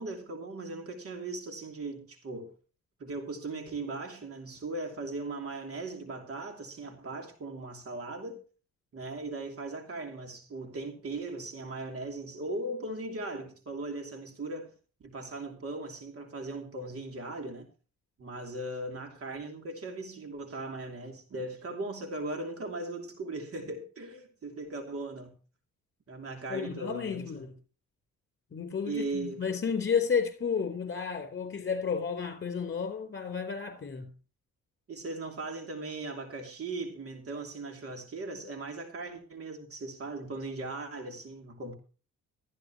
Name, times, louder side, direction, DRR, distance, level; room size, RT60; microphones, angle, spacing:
voice 1, 0.0-2.5 3.0-8.4 8.9-14.7 15.0-17.7 18.2-25.4 26.1-27.5 28.8-29.4 34.9-41.8, right 2 dB, 50° right, 3.0 m, -38 dB
voice 2, 26.5-27.5 28.5-34.1, left 6 dB, 35° left, 4.3 m, -32 dB
14.0 x 13.0 x 3.1 m
cardioid pair, 90°, 30 cm